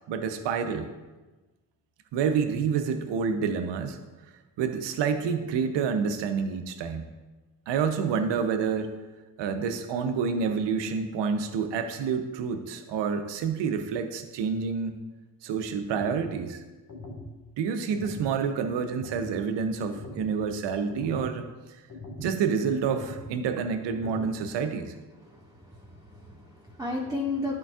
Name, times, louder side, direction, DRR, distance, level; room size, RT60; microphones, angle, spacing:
voice 1, 0.1-0.9 2.1-4.0 4.6-7.1 7.7-8.9 9.4-15.0 15.4-16.6 17.6-21.5 22.2-24.9, right 6 dB, 70° right, 8 dB, 0.8 m, -28 dB
sound 1, 15.9-16.3 16.9-17.3 17.9-18.3 18.9-19.3 19.9-20.3 20.9-21.3 21.9-22.3 22.9-23.3 23.9-24.3, left 2 dB, 50° left, 1.7 m, -41 dB
voice 2, 25.2-27.6, left 2 dB, 10° right, -6 dB, 1.6 m, -34 dB
11.0 x 4.7 x 2.4 m, 1.2 s
hypercardioid pair, 40°, 44 cm